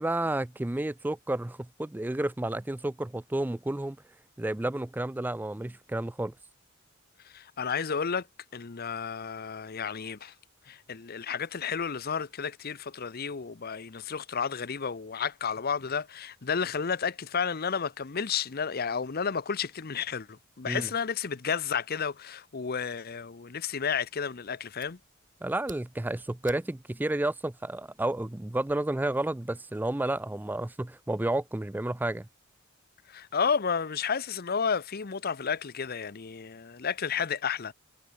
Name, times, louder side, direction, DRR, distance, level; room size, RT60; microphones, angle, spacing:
voice 1, 0.0-4.0 4.4-6.3 20.7-20.9 25.4-32.3, right 1 dB, 10° right, 0.4 m, -31 dB
voice 2, 7.3-8.2 8.5-10.3 10.7-20.3 20.6-25.0 33.1-37.7, left 6 dB, 50° left, 0.8 m, -31 dB
Fire, 24.4-28.8, right 6 dB, 40° right, 3.7 m, -57 dB
head